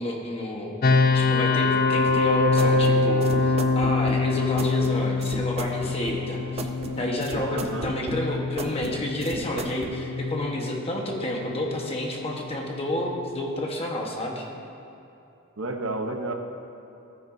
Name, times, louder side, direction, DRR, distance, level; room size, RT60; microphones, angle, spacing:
voice 1, 0.0-6.6 7.0-14.4, left 1 dB, 30° left, -1 dB, 1.2 m, -30 dB
sound 1, 0.8-13.6, left 3 dB, 45° left, 0.4 m, -25 dB
sound 2, 2.1-9.9, right 2 dB, 30° right, 0.5 m, -35 dB
voice 2, 7.5-7.9 15.6-16.3, right 2 dB, 75° right, 4 dB, 0.9 m, -31 dB
15.5 x 9.6 x 2.7 m, 2.8 s
head